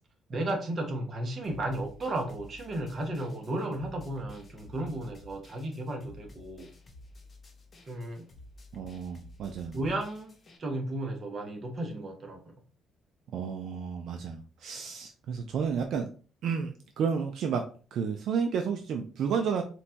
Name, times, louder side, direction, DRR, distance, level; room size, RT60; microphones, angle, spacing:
voice 1, 0.3-6.7 7.9-8.3 9.7-10.3 10.6-12.4, right 1 dB, 30° right, 3 dB, 0.7 m, -34 dB
sound 1, 1.4-10.6, left 2 dB, 25° left, 0.5 m, -52 dB
voice 2, 8.7-9.8 13.3-16.1 16.4-19.6, right 6 dB, 60° right, 5 dB, 0.3 m, -31 dB
4.0 x 2.2 x 2.5 m, 0.38 s
cardioid pair, 175°, 0 cm